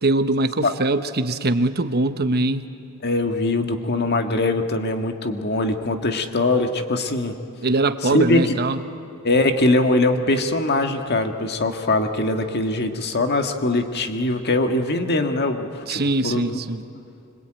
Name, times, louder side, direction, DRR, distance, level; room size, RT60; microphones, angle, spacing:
voice 1, 0.0-2.6 7.6-8.8 15.9-16.8, right 2 dB, 50° right, 10 dB, 1.1 m, -22 dB
voice 2, 3.0-7.3 8.0-8.6 9.2-16.6, left 2 dB, 50° left, 6 dB, 1.8 m, -22 dB
25.5 x 25.5 x 9.1 m, 2.6 s
head